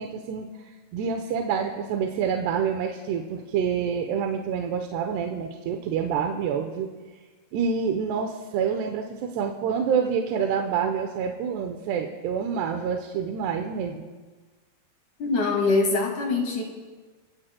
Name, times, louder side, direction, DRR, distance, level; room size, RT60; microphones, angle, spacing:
voice 1, 0.0-6.9 7.5-14.1, right 7 dB, 80° right, 3 dB, 3.0 m, -27 dB
voice 2, 15.2-16.6, left 3 dB, 50° left, 0 dB, 3.3 m, -23 dB
28.0 x 16.5 x 2.3 m, 1.3 s
omnidirectional pair, 4.9 m